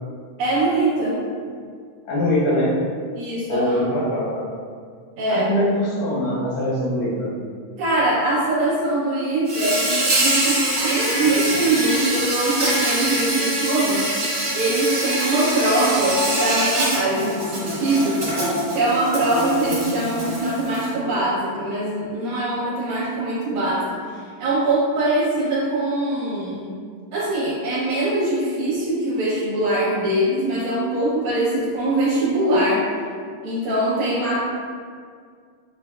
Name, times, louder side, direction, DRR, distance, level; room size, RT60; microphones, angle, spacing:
voice 1, 0.4-1.3 3.2-3.8 5.2-5.6 7.8-18.3 18.7-26.7 27.1-32.9 33.4-34.4, right 1 dB, 70° right, -9 dB, 2.0 m, -22 dB
voice 2, 2.0-2.8 3.5-4.4 5.3-7.3, left 1 dB, 75° left, -7 dB, 1.3 m, -22 dB
Insect, 9.4-20.9, right 1 dB, 50° right, 0.8 m, -24 dB
7.2 x 2.5 x 2.3 m, 2.1 s
omnidirectional pair, 3.8 m